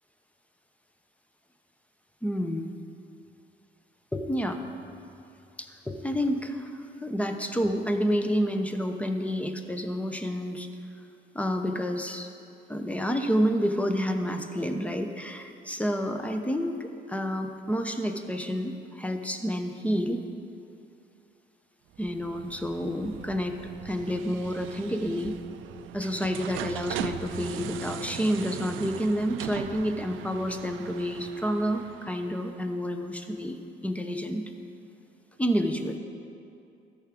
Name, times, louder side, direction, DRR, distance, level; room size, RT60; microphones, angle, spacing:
voice 1, 2.2-2.7 4.1-4.7 5.6-10.7 11.3-12.3 12.7-20.2 22.0-23.6 23.8-25.4 25.9-33.6 33.8-34.5 35.4-36.0, equal, 5° left, 6 dB, 0.8 m, -29 dB
sound 1, 21.9-32.7, right 11 dB, 85° right, 0.4 m, -40 dB
13.5 x 4.9 x 6.0 m, 2.6 s
cardioid pair, 90°, 20 cm